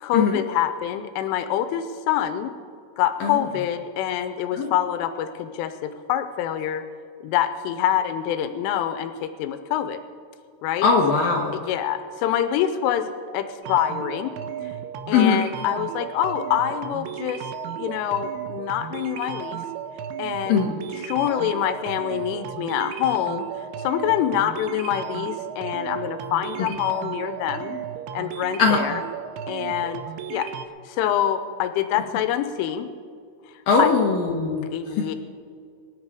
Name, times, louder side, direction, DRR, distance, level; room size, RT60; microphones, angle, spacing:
voice 1, 0.0-2.5 3.0-6.8 7.2-10.0 10.6-10.9 11.5-14.3 14.6-14.7 15.1-17.4 17.7-19.6 20.2-20.7 21.0-23.5 23.8-27.8 28.1-29.0 29.5-30.0 30.3-30.5 30.9-32.9 33.8-33.9 34.7-35.2, left 10 dB, 90° left, 10 dB, 3.2 m, -25 dB
voice 2, 10.8-11.6 15.1-15.4 20.5-20.7 28.6-28.9 33.7-34.6, left 5 dB, 70° left, 0 dB, 2.2 m, -20 dB
sound 1, 13.6-30.7, right 9 dB, 90° right, 2.2 m, -34 dB
23.5 x 10.5 x 4.8 m, 2.3 s
omnidirectional pair, 5.6 m